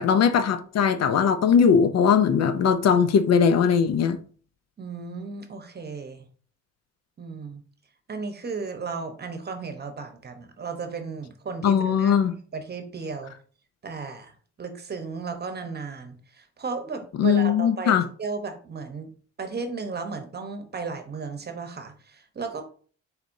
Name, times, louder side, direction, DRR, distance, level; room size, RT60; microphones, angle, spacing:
voice 1, 0.0-4.2 11.6-12.4 17.2-18.0, left 7 dB, 60° left, 0.5 m, -20 dB
voice 2, 4.8-6.2 7.2-7.6 8.1-12.2 12.5-13.3 13.8-14.3 14.6-19.1 19.4-22.6, right 4 dB, 35° right, 0.9 m, -34 dB
4.2 x 4.1 x 2.6 m
cardioid pair, 90°, 30 cm